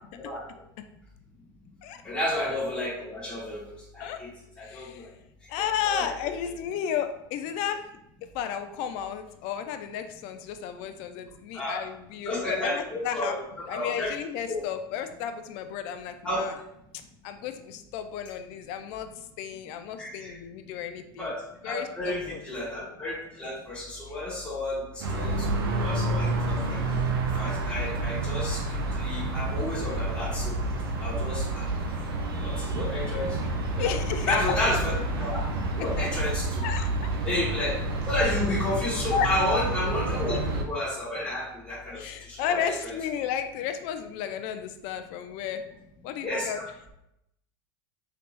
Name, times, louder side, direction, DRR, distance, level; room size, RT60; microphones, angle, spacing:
voice 1, 2.0-3.6 3.9-4.3 4.6-5.1 5.6-6.1 11.5-11.8 12.2-14.1 14.5-14.6 16.2-16.4 20.0-20.3 21.2-21.3 21.6-25.5 25.8-26.8 27.4-28.6 28.9-30.6 31.0-31.7 32.4-33.4 33.8-33.9 34.3-34.9 35.2-35.4 35.7-36.6 37.2-37.8 38.1-42.9 46.2-46.6, left 1 dB, 10° left, -7 dB, 1.2 m, -31 dB
voice 2, 4.6-5.1 5.5-7.9 8.2-13.4 13.7-16.6 16.9-21.3 21.6-22.4 33.8-34.6 36.0-36.1 36.6-36.9 39.1-39.3 41.9-45.6 46.0-46.6, left 8 dB, 60° left, 8 dB, 0.4 m, -33 dB
sound 1, 25.0-40.6, right 2 dB, 85° right, 0.5 m, -29 dB
3.5 x 2.8 x 2.4 m, 0.82 s
hypercardioid pair, 100°, 12 cm